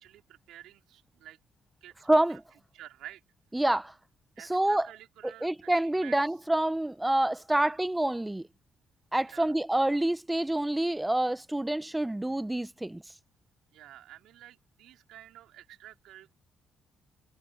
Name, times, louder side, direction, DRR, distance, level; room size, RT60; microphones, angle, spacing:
voice 1, 0.0-1.4 1.8-2.4 2.7-3.2 4.4-6.2 7.5-7.8 9.3-9.5 13.7-16.3, right 13 dB, 90° right, 3.2 m, -50 dB
voice 2, 2.1-2.4 3.5-3.9 4.5-4.9 5.4-8.5 9.1-13.0, right 1 dB, 10° right, 0.6 m, -27 dB
cardioid pair, 90°, 0 cm